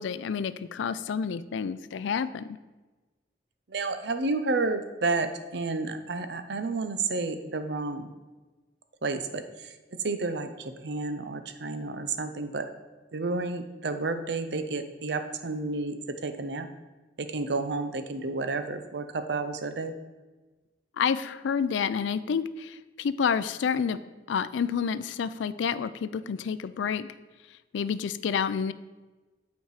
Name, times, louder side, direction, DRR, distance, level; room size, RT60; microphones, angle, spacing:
voice 1, 0.0-2.6 21.0-24.0 24.3-27.1 27.7-28.7, left 6 dB, 85° left, 15 dB, 0.4 m, -29 dB
voice 2, 3.7-8.1 9.0-9.7 10.0-12.7 13.1-16.0 16.2-16.7 17.2-19.9, right 3 dB, 70° right, 9 dB, 0.6 m, -31 dB
8.1 x 4.5 x 4.8 m, 1.2 s
head